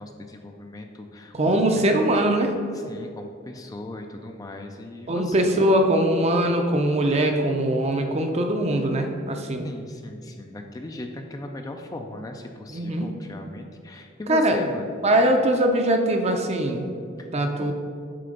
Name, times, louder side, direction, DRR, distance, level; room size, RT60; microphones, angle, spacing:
voice 1, 0.0-1.8 2.7-5.7 9.6-14.9 17.2-17.5, left 2 dB, 20° left, 4 dB, 0.3 m, -38 dB
voice 2, 1.3-2.5 5.1-9.7 12.7-13.1 14.3-14.6 15.0-16.9 17.3-17.7, right 1 dB, 30° right, 4 dB, 0.6 m, -21 dB
7.6 x 3.9 x 5.1 m, 2.3 s
head